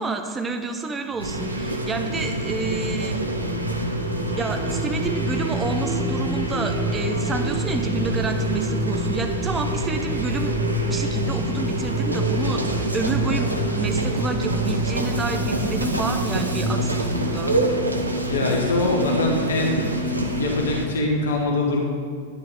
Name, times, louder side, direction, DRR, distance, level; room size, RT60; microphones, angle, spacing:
voice 1, 0.0-3.2 4.4-10.5 10.8-12.6 12.9-17.6, right 3 dB, 15° right, 5 dB, 0.7 m, -29 dB
sound 1, 1.1-17.2, right 2 dB, 35° right, 2.0 m, -28 dB
sound 2, 1.2-20.9, right 1 dB, 85° right, 0.8 m, -27 dB
sound 3, 12.3-20.4, left 2 dB, 25° left, 1.2 m, -35 dB
voice 2, 18.3-19.8 20.4-21.8, left 2 dB, 65° left, 0 dB, 1.1 m, -23 dB
9.9 x 9.3 x 3.6 m, 2.2 s
figure-of-eight pair, 90°, 0 cm